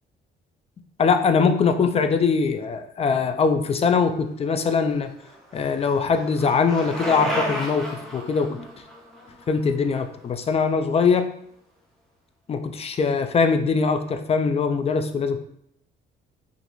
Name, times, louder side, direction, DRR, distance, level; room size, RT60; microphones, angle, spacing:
voice 1, 1.0-5.1 5.5-8.7 9.5-11.3 12.5-15.4, left 5 dB, 30° left, 7 dB, 0.4 m, -22 dB
Bicycle, 4.7-10.7, equal, ahead, 0.7 m, -33 dB
3.0 x 2.5 x 3.0 m, 0.70 s
cardioid pair, 90°, 20 cm